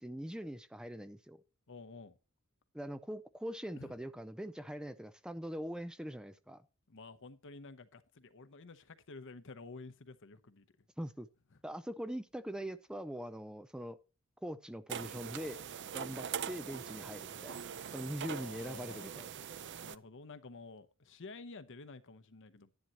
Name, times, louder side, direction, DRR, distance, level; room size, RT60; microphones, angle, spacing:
voice 1, 0.0-1.4 2.7-6.6 11.0-11.3 11.6-14.0 14.4-15.6 15.9-19.3, equal, 5° right, 0.4 m, -42 dB
voice 2, 1.7-2.2 3.8-3.9 6.9-10.9 18.2-19.1 19.8-22.7, left 3 dB, 60° left, 0.9 m, -51 dB
sound 1, 14.9-20.0, right 8 dB, 55° right, 0.5 m, -42 dB
11.0 x 10.5 x 2.9 m
head